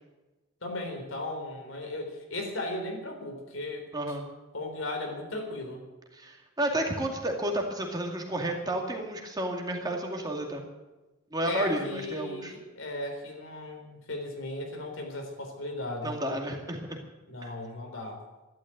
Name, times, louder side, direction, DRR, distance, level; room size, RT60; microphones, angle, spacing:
voice 1, 0.6-3.8 4.5-5.8 11.5-16.2 17.3-18.2, left 2 dB, 80° left, 3 dB, 4.0 m, -36 dB
voice 2, 3.9-4.2 6.1-10.6 11.3-12.5 16.0-17.0 17.4-17.5, right 1 dB, 20° right, 2 dB, 2.3 m, -31 dB
12.0 x 12.0 x 8.8 m, 1.1 s
head